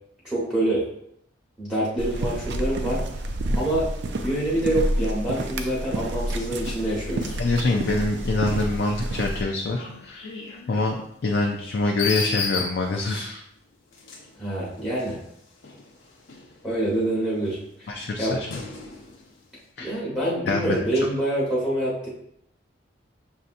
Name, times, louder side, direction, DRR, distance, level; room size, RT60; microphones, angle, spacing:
voice 1, 0.2-0.9 1.6-3.0 3.5-3.9 4.2-7.4 14.4-15.2 16.6-17.9 18.2-18.4 19.8-22.1, right 1 dB, 5° right, -7 dB, 1.1 m, -26 dB
sound 1, 2.0-9.4, right 1 dB, 65° right, 0.4 m, -29 dB
sound 2, 6.1-13.3 13.9-17.0 17.4-19.5, left 5 dB, 75° left, 0.8 m, -37 dB
voice 2, 7.4-10.2 10.7-11.0 11.2-13.4 17.9-18.6 19.8-20.0 20.5-21.1, left 2 dB, 55° left, 1 dB, 0.4 m, -25 dB
6.6 x 2.7 x 2.5 m, 0.73 s
head